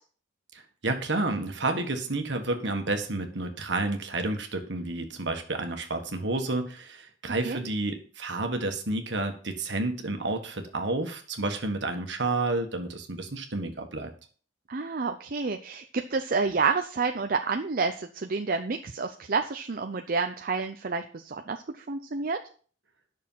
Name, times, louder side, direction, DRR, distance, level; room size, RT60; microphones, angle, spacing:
voice 1, 0.5-14.1, right 2 dB, 65° right, 5 dB, 1.7 m, -30 dB
voice 2, 14.7-22.4, right 4 dB, 50° right, 6 dB, 0.6 m, -29 dB
9.9 x 6.4 x 5.7 m, 0.43 s
head